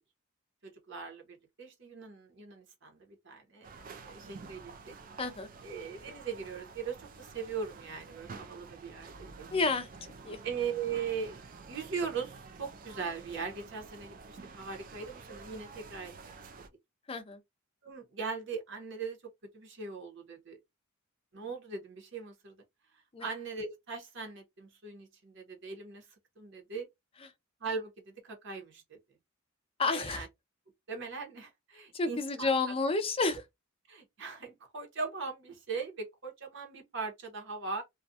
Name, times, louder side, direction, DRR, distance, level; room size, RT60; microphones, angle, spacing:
voice 1, 0.6-4.9 5.6-9.5 10.4-16.1 17.8-20.6 21.3-22.6 22.9-26.1 26.4-26.9 27.6-29.0 29.9-30.3 30.9-32.5 33.9-37.8, right 5 dB, 60° right, 0.9 m, -40 dB
sound 1, 3.6-16.7, right 4 dB, 40° right, 0.3 m, -50 dB
voice 2, 5.2-5.5 9.5-9.9 10.2-10.4 17.1-17.4 23.1-23.3 29.8-30.3 31.9-33.4, left 3 dB, 25° left, 0.4 m, -30 dB
2.4 x 2.2 x 2.7 m
head